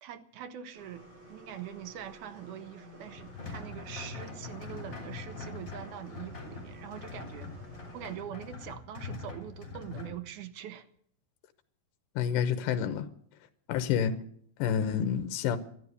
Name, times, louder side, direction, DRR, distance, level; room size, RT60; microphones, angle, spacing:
voice 1, 0.0-7.5 7.9-10.9, right 10 dB, 75° right, 2.0 m, -43 dB
sound 1, 0.7-8.2, equal, 30° right, 4.8 m, -52 dB
sound 2, 3.0-10.1, left 4 dB, 30° left, 3.4 m, -43 dB
voice 2, 12.2-13.1 13.7-14.2 14.6-15.6, left 8 dB, 75° left, 2.4 m, -28 dB
12.5 x 11.5 x 8.2 m
omnidirectional pair, 4.2 m